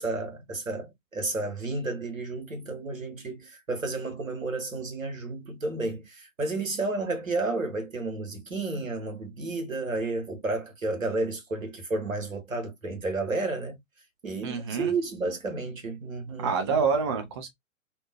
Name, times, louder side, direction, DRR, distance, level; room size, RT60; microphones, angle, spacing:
voice 1, 0.0-13.8 14.2-16.8, right 3 dB, 80° right, 1.2 m, -32 dB
voice 2, 14.4-14.9 16.4-17.5, right 5 dB, 25° right, 0.4 m, -27 dB
2.7 x 2.1 x 2.8 m
figure-of-eight pair, 110°, 40 cm